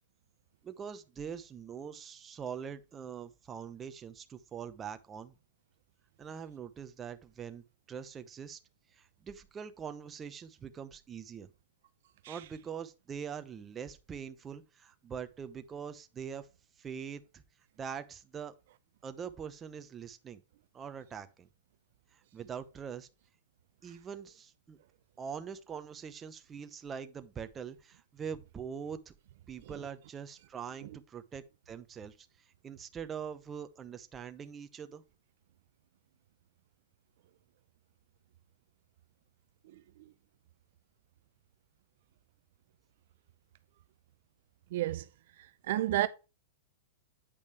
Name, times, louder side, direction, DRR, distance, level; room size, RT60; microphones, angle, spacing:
voice 1, 0.6-5.3 6.2-8.6 8.9-11.5 12.3-16.5 16.8-17.4 17.8-18.5 19.0-20.4 20.7-21.5 22.1-23.1 23.8-24.8 25.2-29.1 29.5-32.3 32.6-35.0, right 7 dB, 20° right, 0.8 m, -43 dB
voice 2, 44.7-45.1 45.6-46.1, right 15 dB, 65° right, 0.5 m, -30 dB
8.5 x 5.2 x 3.3 m
hypercardioid pair, 135°, 0 cm